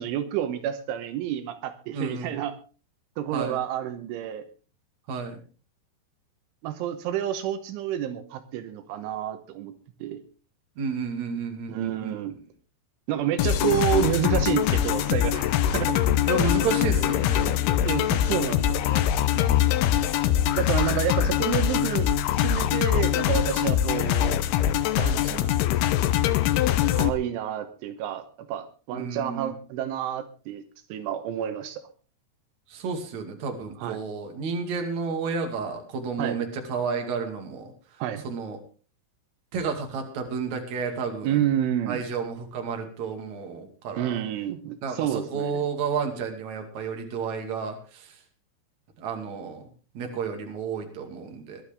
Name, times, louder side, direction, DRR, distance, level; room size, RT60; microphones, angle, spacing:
voice 1, 0.0-2.5 3.2-4.4 6.6-9.7 10.0-10.2 11.7-12.4 13.1-16.2 17.8-19.1 20.5-22.1 22.4-24.4 25.0-25.5 26.9-30.6 30.9-31.8 33.8-34.0 36.2-36.4 38.0-38.2 41.2-42.0 44.0-45.5, right 10 dB, 80° right, 9 dB, 3.4 m, -29 dB
voice 2, 1.9-2.3 3.3-3.6 5.1-5.4 10.8-12.1 16.3-17.7 19.3-20.0 28.9-29.5 32.7-38.6 39.5-41.4 41.9-44.2 44.8-48.2 49.0-51.6, right 5 dB, 45° right, 3 dB, 3.0 m, -32 dB
sound 1, 13.4-27.1, left 11 dB, 90° left, 2.2 m, -23 dB
21.5 x 11.5 x 3.5 m, 0.36 s
omnidirectional pair, 5.6 m